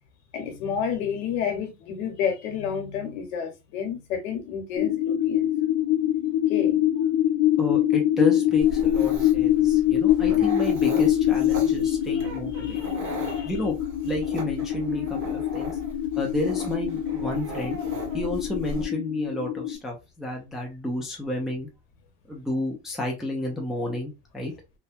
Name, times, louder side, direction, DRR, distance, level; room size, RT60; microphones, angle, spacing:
voice 1, 0.3-5.5 6.5-6.8 12.6-12.9 13.2-13.5, left 7 dB, 80° left, 0.9 m, -30 dB
sound 1, 4.8-19.8, left 12 dB, 55° left, 0.7 m, -24 dB
voice 2, 7.6-12.8 13.4-13.7 14.0-15.8 16.2-17.8 18.1-21.7 22.3-24.5, left 1 dB, ahead, 0.3 m, -31 dB
Dog, 8.6-18.8, right 1 dB, 35° right, 1.4 m, -37 dB
2.6 x 2.2 x 2.4 m
supercardioid pair, 135°, 37 cm